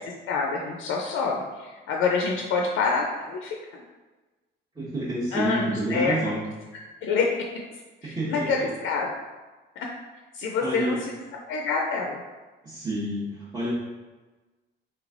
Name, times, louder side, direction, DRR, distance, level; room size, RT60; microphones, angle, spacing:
voice 1, 0.3-3.8 5.3-6.4 7.0-7.3 8.0-9.1 9.8-9.9 10.3-11.1 11.5-12.2, left 4 dB, 80° left, 0 dB, 0.4 m, -27 dB
voice 2, 4.7-6.4 8.0-8.6 10.6-11.0 12.6-13.7, right 1 dB, 20° right, -10 dB, 0.9 m, -29 dB
3.2 x 3.1 x 2.4 m, 1.2 s
cardioid pair, 90°, 20 cm